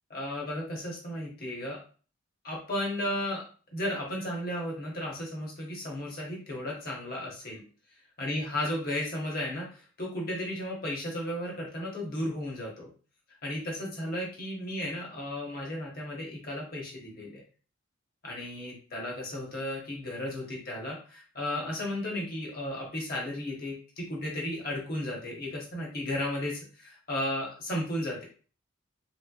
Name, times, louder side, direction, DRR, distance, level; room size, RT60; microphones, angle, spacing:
voice 1, 0.1-1.8 2.4-3.4 3.7-7.6 8.2-12.9 13.4-17.4 18.2-28.2, left 1 dB, 45° left, -2 dB, 1.1 m, -34 dB
3.3 x 3.1 x 2.4 m, 0.39 s
head